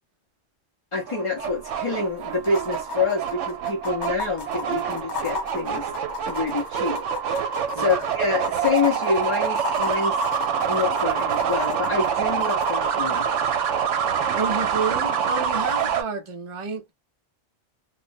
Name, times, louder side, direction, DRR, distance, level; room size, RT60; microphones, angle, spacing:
voice 1, 0.9-5.9 6.3-7.0 7.3-10.2 10.7-13.3, left 4 dB, 40° left, 0.4 m, -27 dB
sound 1, 1.1-16.0, right 7 dB, 75° right, 0.9 m, -26 dB
sound 2, 1.4-1.5 1.7-1.8 2.4-12.7 14.4-14.5, left 4 dB, 65° left, 0.9 m, -34 dB
voice 2, 14.3-16.8, right 5 dB, 35° right, 0.5 m, -30 dB
2.4 x 2.0 x 2.5 m
omnidirectional pair, 1.3 m